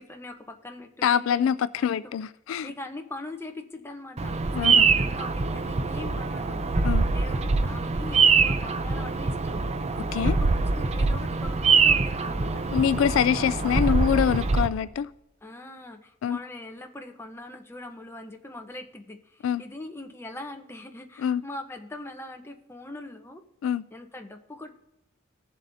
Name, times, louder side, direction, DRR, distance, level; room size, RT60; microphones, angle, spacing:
voice 1, 0.0-1.5 1.8-2.1 2.6-9.7 10.2-12.6 13.2-14.0 15.4-23.4 23.9-24.7, left 2 dB, 10° left, 4 dB, 0.9 m, -42 dB
voice 2, 1.0-2.7 4.5-4.9 6.8-7.1 10.0-10.4 12.7-15.1 16.2-16.4 19.4-19.6 21.2-21.4 23.6-23.9, left 8 dB, 70° left, 15 dB, 0.3 m, -25 dB
Bird vocalization bird call bird song, 4.2-14.7, right 4 dB, 35° right, 0.5 m, -24 dB
20.0 x 7.3 x 2.7 m, 0.90 s
head